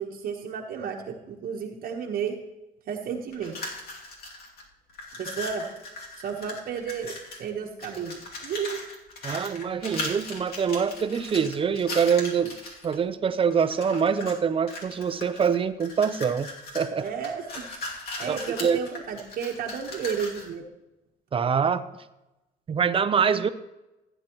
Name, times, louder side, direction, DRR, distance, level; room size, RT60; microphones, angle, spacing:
voice 1, 0.0-2.4 2.9-3.7 5.2-5.6 6.2-8.8 17.0-17.7 18.2-20.6, right 7 dB, 60° right, 1 dB, 1.2 m, -32 dB
sound 1, 3.3-4.6 4.9-7.5 7.8-12.9 13.5-14.4 14.7-20.5, left 2 dB, 60° left, 2.6 m, -38 dB
voice 2, 9.2-12.6 12.8-16.5 16.7-17.0 18.3-18.8 21.3-21.8 22.7-23.5, right 6 dB, 30° right, 12 dB, 0.6 m, -24 dB
15.5 x 9.2 x 3.0 m, 0.97 s
cardioid pair, 110°, 17 cm